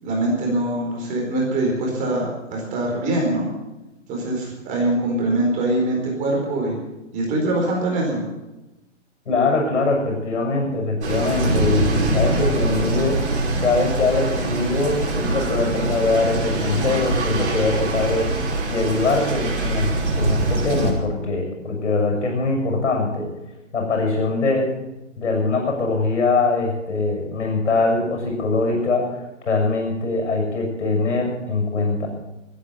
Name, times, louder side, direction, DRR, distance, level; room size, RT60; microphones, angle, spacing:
voice 1, 0.0-3.5 4.1-6.8 7.1-8.2, right 1 dB, 20° right, -1 dB, 4.3 m, -23 dB
voice 2, 9.3-13.2 13.6-18.3 18.7-23.3 23.7-24.7 25.2-32.1, left 3 dB, 70° left, 1 dB, 7.3 m, -22 dB
sound 1, 11.0-20.9, right 2 dB, 60° right, 5.0 m, -23 dB
15.0 x 10.0 x 8.1 m, 1.0 s
hypercardioid pair, 145°, 37 cm